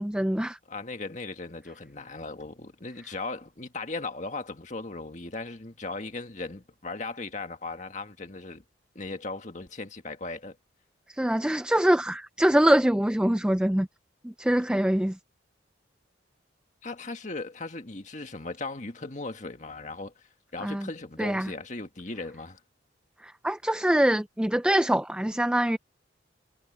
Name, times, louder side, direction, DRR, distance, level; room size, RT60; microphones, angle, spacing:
voice 1, 0.0-0.6 11.2-13.9 14.2-15.1 20.6-20.9 21.2-21.5 23.4-25.8, right 1 dB, 5° right, 0.3 m, -24 dB
voice 2, 0.7-8.6 9.0-10.6 16.8-22.6, left 3 dB, 40° left, 1.9 m, -37 dB
head